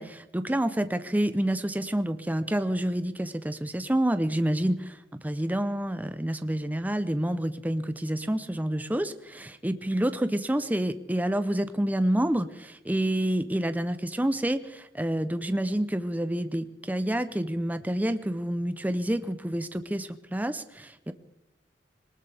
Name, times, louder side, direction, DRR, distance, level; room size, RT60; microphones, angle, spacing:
voice 1, 0.0-5.0 5.2-21.1, right 1 dB, 10° right, 11 dB, 0.6 m, -28 dB
21.5 x 19.5 x 3.4 m, 0.86 s
head